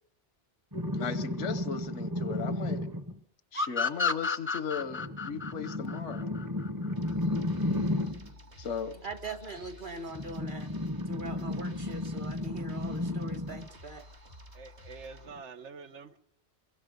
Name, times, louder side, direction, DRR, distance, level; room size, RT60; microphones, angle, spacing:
sound 1, 0.7-3.2 4.8-8.3 10.1-13.7 15.3-15.4, left 1 dB, 20° right, 0.8 m, -33 dB
voice 1, 0.9-2.9 3.5-6.3 8.6-9.0, left 7 dB, 85° left, 14 dB, 1.4 m, -37 dB
sound 2, 3.5-6.9, left 4 dB, 15° left, 0.6 m, -31 dB
sound 3, 7.0-15.3, equal, 70° right, 2.7 m, -51 dB
voice 2, 9.0-10.7 11.1-14.1, right 2 dB, 45° right, 11 dB, 1.6 m, -41 dB
voice 3, 14.5-16.2, right 4 dB, 90° right, 10 dB, 1.4 m, -46 dB
22.5 x 22.5 x 5.3 m, 0.64 s
omnidirectional pair, 1.2 m